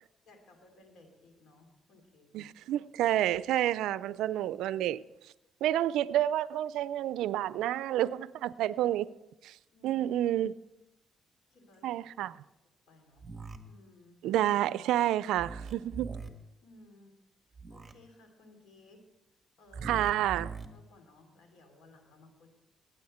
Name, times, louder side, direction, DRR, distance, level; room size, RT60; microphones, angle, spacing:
voice 1, 0.2-2.3 9.7-10.1 11.5-11.9 12.3-12.4 12.9-13.3 13.6-14.2 16.6-17.2 17.7-19.0 19.6-20.0 20.7-22.5, left 2 dB, 75° left, 2.7 m, -58 dB
voice 2, 2.3-5.0 5.6-9.1 9.4-9.6 9.8-10.5 11.8-12.4 14.2-16.1 19.8-20.5, right 13 dB, 90° right, 0.3 m, -29 dB
sound 1, 13.2-13.6 15.4-16.3 17.5-17.9 19.7-20.7, right 4 dB, 20° right, 1.4 m, -41 dB
17.0 x 8.8 x 4.3 m
cardioid pair, 90°, 0 cm